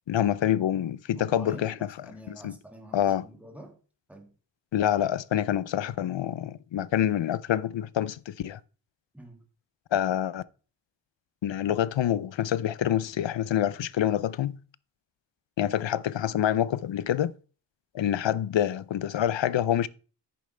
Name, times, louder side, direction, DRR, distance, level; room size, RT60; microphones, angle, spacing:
voice 1, 0.1-1.7 2.3-2.5 2.9-3.2 4.7-8.6 9.9-10.4 11.4-14.5 15.6-17.3 17.9-19.9, left 11 dB, 85° left, 0.6 m, -26 dB
voice 2, 1.1-3.8 4.1-4.3 9.1-9.4, right 1 dB, 5° right, 2.2 m, -47 dB
10.5 x 8.6 x 3.3 m
wide cardioid pair, 140°, 44 cm